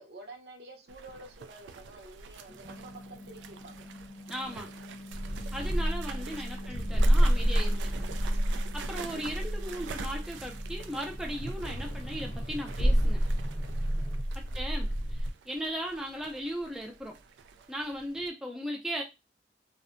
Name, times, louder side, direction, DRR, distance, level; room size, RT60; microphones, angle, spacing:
voice 1, 0.0-3.9 5.7-5.9 6.4-6.5 14.3-14.4, right 2 dB, 65° right, 2 dB, 0.6 m, -49 dB
sound 1, 0.9-18.3, right 6 dB, 90° right, 0.3 m, -47 dB
sound 2, 2.5-14.2, equal, 30° left, 0.8 m, -46 dB
voice 2, 4.3-4.7 5.5-8.1 8.7-13.2 14.4-17.2 17.7-19.0, equal, 5° right, 0 dB, 0.3 m, -37 dB
sound 3, 5.1-15.3, equal, 65° left, 0.5 m, -29 dB
2.5 x 2.1 x 2.5 m, 0.26 s
head